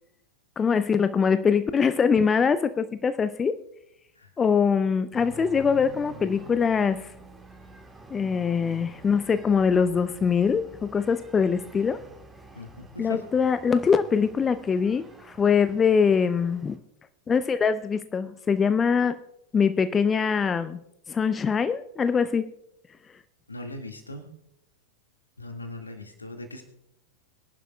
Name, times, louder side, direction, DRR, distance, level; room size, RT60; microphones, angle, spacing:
voice 1, 0.6-3.6 4.4-7.1 8.1-12.0 13.0-16.8 17.3-19.2 19.5-20.8 21.1-22.5, left 6 dB, 20° left, 12 dB, 0.5 m, -23 dB
sound 1, 5.1-16.8, right 2 dB, 10° right, 2.1 m, -48 dB
voice 2, 12.6-13.2 23.5-24.2 25.4-26.6, left 2 dB, 80° left, 4 dB, 1.9 m, -39 dB
23.5 x 11.0 x 2.3 m, 0.79 s
figure-of-eight pair, 90°, 0 cm